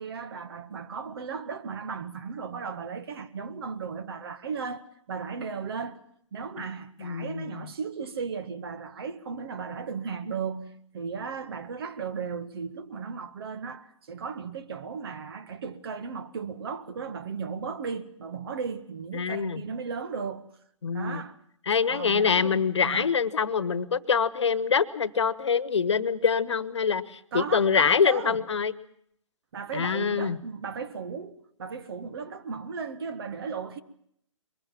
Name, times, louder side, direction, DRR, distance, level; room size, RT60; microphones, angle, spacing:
voice 1, 0.0-4.8 5.1-6.0 6.3-20.5 20.9-21.4 21.9-23.1 27.3-28.4 29.5-33.8, right 5 dB, 50° right, 1.8 m, -36 dB
voice 2, 7.0-7.5 19.1-19.6 20.8-21.2 21.7-28.7 29.7-30.4, left 6 dB, 60° left, 1.3 m, -25 dB
23.0 x 21.5 x 7.4 m
figure-of-eight pair, 130°, 16 cm